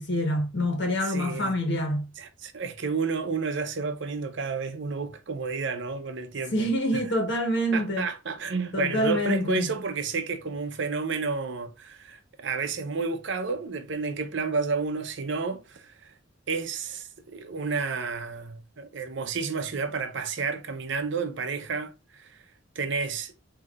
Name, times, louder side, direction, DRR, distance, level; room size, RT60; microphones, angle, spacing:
voice 1, 0.0-2.1 6.5-8.1 8.7-9.7, equal, 60° left, 1.3 m, -26 dB
voice 2, 1.0-1.6 2.2-6.7 6.9-7.0 7.7-16.1 16.5-22.4 22.8-23.3, right 4 dB, 65° right, 0.7 m, -31 dB
5.8 x 2.8 x 2.4 m
head